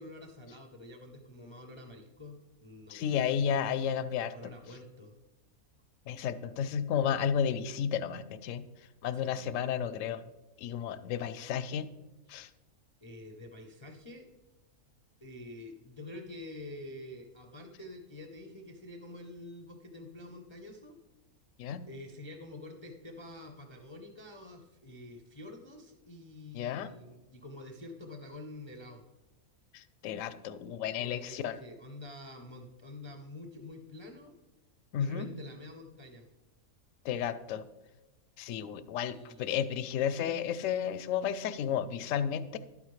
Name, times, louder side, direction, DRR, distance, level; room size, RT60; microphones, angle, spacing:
voice 1, 0.0-3.0 4.3-5.1 9.1-9.6 13.0-14.3 15.2-21.0 21.9-29.0 31.0-34.3 35.0-36.3 39.1-39.6, left 1 dB, 30° left, 2 dB, 0.5 m, -47 dB
voice 2, 2.9-4.3 6.1-8.6 9.0-10.2 10.6-11.9 12.3-12.5 21.6-21.9 26.5-27.0 29.7-31.6 34.9-35.4 37.0-37.7 38.4-42.6, left 8 dB, 70° left, 13 dB, 0.9 m, -32 dB
11.5 x 9.0 x 3.2 m, 1.1 s
omnidirectional pair, 1.5 m